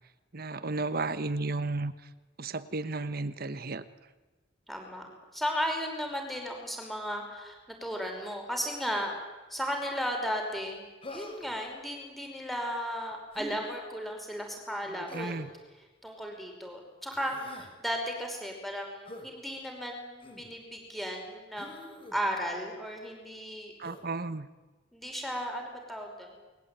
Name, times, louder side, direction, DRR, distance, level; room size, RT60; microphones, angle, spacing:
voice 1, 0.3-1.9 2.4-3.8 14.9-15.5 23.8-24.5, right 3 dB, 50° right, 13 dB, 1.2 m, -33 dB
voice 2, 4.7-5.1 5.3-9.2 9.5-10.8 11.1-15.3 15.8-23.7 24.9-26.4, equal, ahead, 2 dB, 5.4 m, -35 dB
Human voice, 11.0-11.6 13.3-13.6 15.1-15.5 17.1-17.7 19.1-19.3 20.2-20.5 21.6-22.2 23.8-24.1, left 2 dB, 30° left, 4.7 m, -44 dB
28.5 x 21.5 x 9.3 m, 1.2 s
head